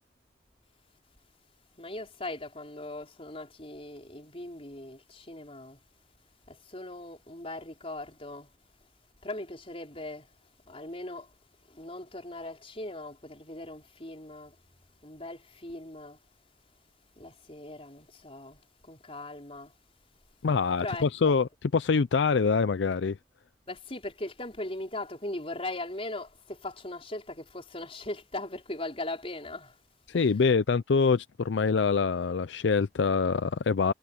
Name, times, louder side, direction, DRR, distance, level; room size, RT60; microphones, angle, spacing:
voice 1, 1.8-5.8 6.5-8.5 9.2-10.3 10.6-11.4 11.7-14.6 15.0-16.2 17.1-19.7 20.8-21.3 23.7-29.8 30.1-30.2, left 2 dB, 30° left, 4.9 m, -39 dB
voice 2, 20.4-23.2 30.1-33.9, left 5 dB, 75° left, 0.5 m, -25 dB
head